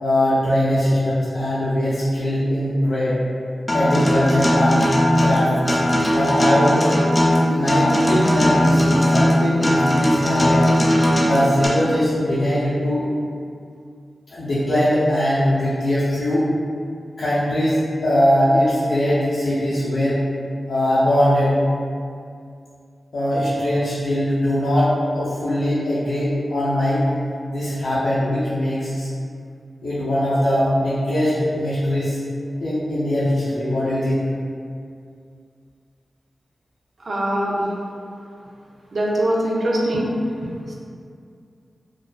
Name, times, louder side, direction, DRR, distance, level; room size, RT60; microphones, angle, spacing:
voice 1, 0.0-3.2 3.7-4.9 5.2-5.7 6.1-6.9 7.4-10.7 11.2-13.1 14.3-16.5 17.2-20.2 20.7-21.6 23.1-27.0 27.5-29.1 29.8-32.2 32.6-34.3, left 1 dB, 80° left, -12 dB, 0.5 m, -21 dB
Acoustic guitar, 3.7-11.7, equal, 20° left, 0.3 m, -18 dB
voice 2, 37.0-37.7 38.9-40.1 40.7-40.8, right 1 dB, 50° right, -4 dB, 0.4 m, -22 dB
2.3 x 2.2 x 2.4 m, 2.3 s
wide cardioid pair, 150°, 0 cm